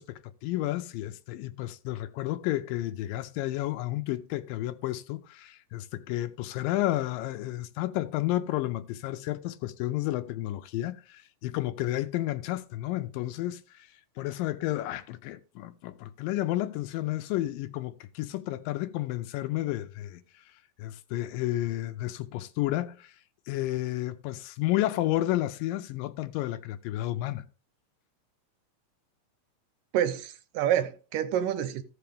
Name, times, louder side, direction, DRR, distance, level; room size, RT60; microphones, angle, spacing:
voice 1, 0.0-13.6 14.2-20.2 20.8-23.1 23.5-27.4, left 15 dB, 90° left, 2.3 m, -31 dB
voice 2, 29.9-31.8, right 10 dB, 80° right, 2.3 m, -28 dB
15.0 x 5.8 x 3.4 m
omnidirectional pair, 4.0 m